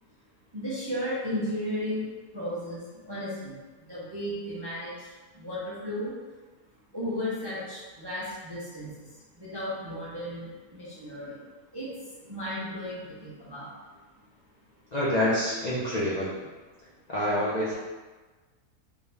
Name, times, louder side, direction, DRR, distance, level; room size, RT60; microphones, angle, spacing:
voice 1, 0.5-2.1 2.3-5.1 5.3-6.1 6.9-11.4 11.7-11.9 12.2-13.7, left 1 dB, 25° right, -9 dB, 0.5 m, -34 dB
voice 2, 14.9-16.3 17.1-17.7, left 1 dB, 45° left, -9 dB, 0.5 m, -26 dB
3.4 x 2.7 x 3.4 m, 1.3 s
omnidirectional pair, 1.6 m